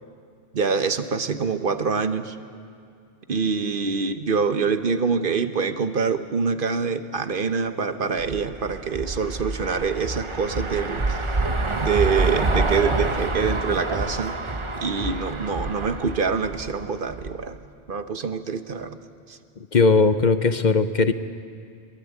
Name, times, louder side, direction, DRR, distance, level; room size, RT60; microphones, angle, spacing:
voice 1, 0.5-2.4 3.3-11.2 11.8-14.4 14.8-17.6 17.9-19.0 19.3-19.4, right 5 dB, 55° right, 9 dB, 1.1 m, -25 dB
sound 1, 8.2-17.4, right 2 dB, 30° right, 1.0 m, -27 dB
voice 2, 19.7-21.1, left 4 dB, 50° left, 10 dB, 0.8 m, -18 dB
23.5 x 22.0 x 8.2 m, 2.4 s
omnidirectional pair, 1.1 m